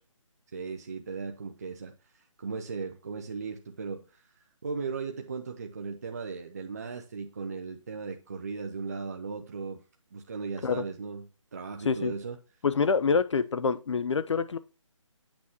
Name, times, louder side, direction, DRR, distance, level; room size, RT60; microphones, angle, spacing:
voice 1, 0.5-4.3 4.6-9.8 10.1-12.4 13.1-13.2, right 5 dB, 30° right, 0.5 m, -37 dB
voice 2, 12.6-14.6, left 5 dB, 60° left, 0.5 m, -26 dB
8.6 x 5.5 x 2.8 m
hypercardioid pair, 165°, 17 cm